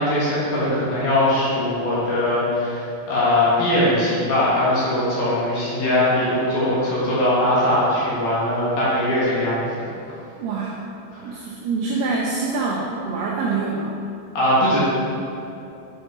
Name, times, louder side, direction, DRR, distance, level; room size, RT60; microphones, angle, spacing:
voice 1, 0.0-2.8 3.1-9.7 11.1-11.3 14.3-14.8, left 1 dB, 65° left, -8 dB, 2.8 m, -20 dB
voice 2, 10.4-10.8 11.2-13.9, right 4 dB, 85° right, -3 dB, 2.4 m, -25 dB
8.1 x 5.0 x 3.6 m, 2.7 s
omnidirectional pair, 5.3 m